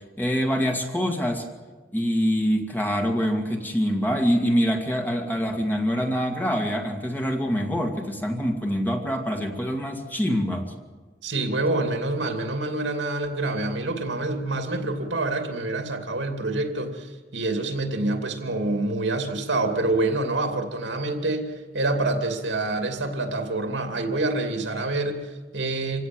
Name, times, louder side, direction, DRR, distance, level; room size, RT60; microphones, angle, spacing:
voice 1, 0.2-1.5 1.9-10.7, equal, 10° left, 2 dB, 2.1 m, -25 dB
voice 2, 11.2-26.1, right 2 dB, 75° right, 5 dB, 2.7 m, -27 dB
26.5 x 17.0 x 7.7 m, 1.3 s
head